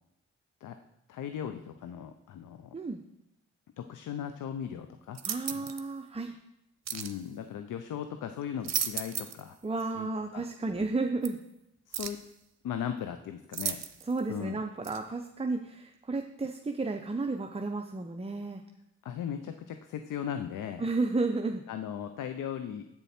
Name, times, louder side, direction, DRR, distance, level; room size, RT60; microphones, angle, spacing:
voice 1, 1.1-2.7 3.8-5.2 5.5-5.7 6.9-9.6 9.9-10.1 10.3-10.5 11.9-12.2 12.6-13.8 14.3-14.6 19.0-20.9 21.7-22.9, left 9 dB, 85° left, 8 dB, 0.6 m, -37 dB
sound 1, 5.1-5.9 6.9-7.2 8.4-9.5 9.8-9.9 11.2-11.3 11.9-12.3 13.5-14.2 14.8-15.0, right 8 dB, 60° right, 0.8 m, -35 dB
voice 2, 5.2-6.4 9.6-11.4 14.1-18.6 20.8-21.6, right 3 dB, 20° right, 4 dB, 0.7 m, -32 dB
8.3 x 7.0 x 4.3 m, 0.84 s
cardioid pair, 65°, 30 cm